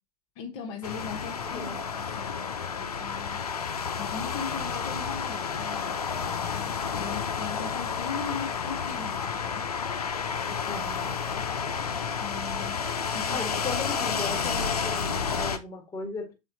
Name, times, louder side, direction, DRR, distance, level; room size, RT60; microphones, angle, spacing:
voice 1, 0.4-3.5 4.0-6.0 6.5-9.7 10.5-10.8 11.1-11.4 12.2-13.6, left 6 dB, 50° left, 1.1 m, -39 dB
sound 1, 0.8-15.6, left 6 dB, 75° left, 0.7 m, -31 dB
voice 2, 1.5-1.8 10.7-11.2 13.3-16.3, left 4 dB, 15° left, 1.7 m, -37 dB
7.2 x 3.7 x 3.9 m
figure-of-eight pair, 90°, 19 cm